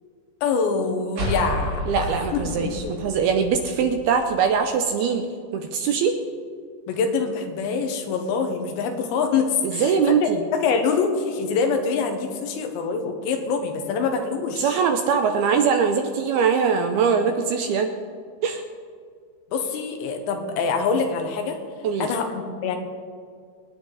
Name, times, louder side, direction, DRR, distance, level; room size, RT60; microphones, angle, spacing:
voice 1, 0.4-2.1 2.3-3.0 6.9-10.0 10.2-14.8 19.5-21.6 22.0-22.8, left 5 dB, 80° left, 5 dB, 3.5 m, -25 dB
sound 1, 1.1-4.7, equal, 50° right, 3.7 m, -31 dB
voice 2, 1.9-5.2 5.5-6.1 9.6-10.4 14.6-17.9 18.4-18.7 21.8-22.1, right 6 dB, 75° right, 5 dB, 2.4 m, -22 dB
25.5 x 10.0 x 4.1 m, 2.1 s
omnidirectional pair, 5.1 m